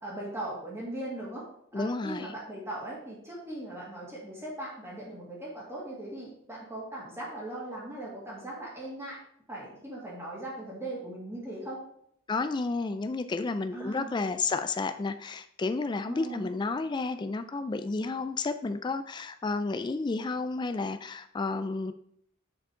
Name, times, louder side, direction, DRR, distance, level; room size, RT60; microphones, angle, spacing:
voice 1, 0.0-1.4 1.7-9.2 9.5-11.8 13.7-14.1 16.1-16.5, right 1 dB, 15° right, -6 dB, 1.9 m, -39 dB
voice 2, 1.7-2.3 12.3-21.9, left 3 dB, 20° left, 9 dB, 0.3 m, -31 dB
7.0 x 5.1 x 4.8 m, 0.68 s
head